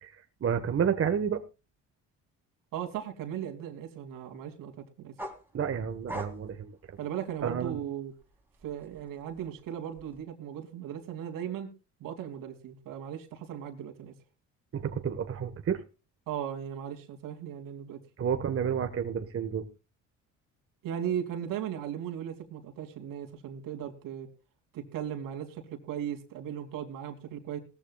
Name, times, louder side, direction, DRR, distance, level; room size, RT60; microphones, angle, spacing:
voice 1, 0.0-1.4 5.5-7.0 7.4-7.8 14.7-15.8 18.2-19.7, right 7 dB, 45° right, 6 dB, 1.5 m, -30 dB
voice 2, 2.7-5.1 7.0-8.1 8.6-11.7 12.0-14.1 16.3-18.0 20.8-24.3 24.7-27.6, right 9 dB, 80° right, 4 dB, 3.0 m, -37 dB
sound 1, 5.2-7.8 8.2-10.2, right 1 dB, 5° right, 3.7 m, -44 dB
19.0 x 14.5 x 2.4 m, 0.30 s
cardioid pair, 100°, 32 cm